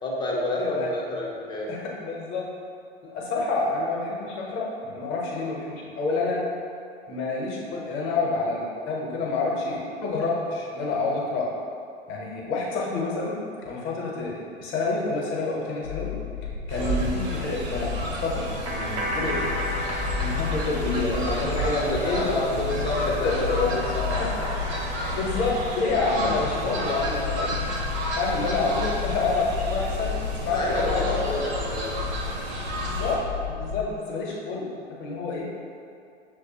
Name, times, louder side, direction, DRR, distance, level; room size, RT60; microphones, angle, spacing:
voice 1, 0.0-1.7 16.7-16.9 21.3-24.2 30.5-32.0, left 1 dB, 15° left, -3 dB, 0.6 m, -29 dB
voice 2, 0.6-0.9 1.7-2.5 3.0-6.4 7.1-11.5 12.1-13.4 13.6-16.1 16.7-17.9 18.2-19.5 20.2-22.4 23.0-23.8 24.2-24.3 25.1-27.5 28.2-30.2 30.4-31.2 32.8-33.2 33.5-34.7 35.0-35.5, left 3 dB, 40° left, -3 dB, 1.0 m, -28 dB
sound 1, 15.8-33.8, left 8 dB, 85° left, 0.5 m, -33 dB
Fowl, 16.7-33.2, right 2 dB, 35° right, 0.8 m, -32 dB
sound 2, 18.6-22.1 22.4-26.3, equal, 65° right, 1.0 m, -34 dB
6.2 x 2.3 x 2.8 m, 2.5 s
figure-of-eight pair, 85°, 31 cm